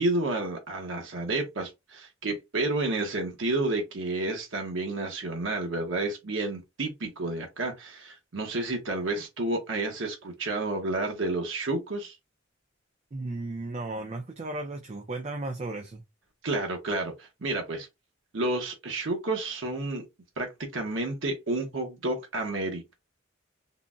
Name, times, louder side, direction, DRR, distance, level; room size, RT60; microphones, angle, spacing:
voice 1, 0.0-12.2 16.4-17.9 18.3-20.0 20.4-22.9, right 2 dB, 70° right, 0.8 m, -30 dB
voice 2, 13.1-16.0, right 2 dB, 35° right, 0.4 m, -35 dB
3.8 x 2.0 x 2.3 m
head